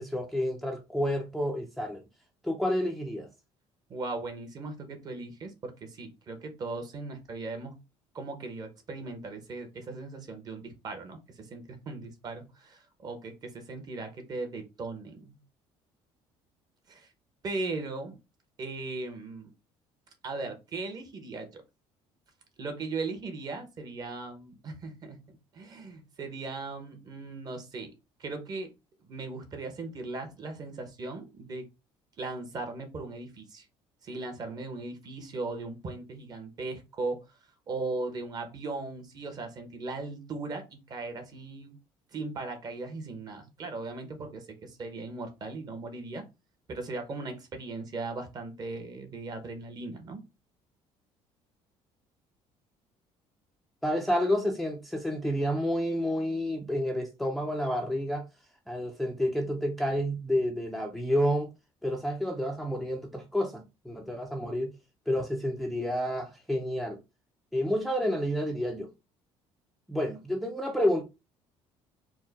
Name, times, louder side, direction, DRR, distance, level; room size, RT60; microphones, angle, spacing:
voice 1, 0.0-2.0 2.4-3.3 53.8-58.3 58.7-61.5 61.8-64.7 65.1-67.0 67.5-68.9 69.9-71.0, equal, ahead, 0.5 m, -29 dB
voice 2, 3.9-7.7 8.1-15.4 16.9-17.1 17.4-18.2 18.6-19.5 20.2-21.6 22.6-27.9 28.2-28.7 29.0-31.6 32.2-33.7 34.0-37.3 37.7-41.8 42.1-46.3 46.7-50.2, right 3 dB, 35° right, 1.0 m, -38 dB
4.5 x 2.2 x 4.0 m
cardioid pair, 155°, 11 cm